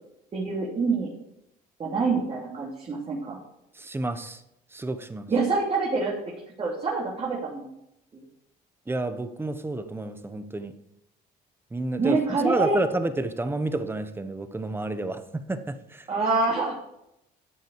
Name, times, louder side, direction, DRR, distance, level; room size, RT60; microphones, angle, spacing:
voice 1, 0.3-1.1 1.8-3.4 5.3-6.1 6.6-7.7 8.1-8.2 12.0-12.8 16.1-16.8, right 3 dB, 35° right, -4 dB, 2.9 m, -26 dB
voice 2, 3.8-4.4 4.7-5.2 8.9-10.7 11.7-16.0, right 2 dB, 15° right, 10 dB, 1.1 m, -30 dB
12.5 x 7.8 x 4.7 m, 0.82 s
cardioid pair, 110°, 17 cm